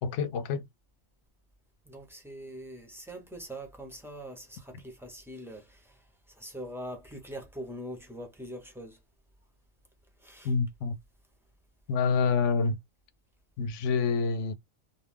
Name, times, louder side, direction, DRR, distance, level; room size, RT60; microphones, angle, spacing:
voice 1, 0.0-0.6 10.4-11.0 11.9-12.8 13.6-14.5, left 5 dB, 70° left, 0.9 m, -27 dB
voice 2, 1.8-9.0 10.2-10.6, equal, 5° right, 0.6 m, -43 dB
2.5 x 2.3 x 3.3 m
omnidirectional pair, 1.4 m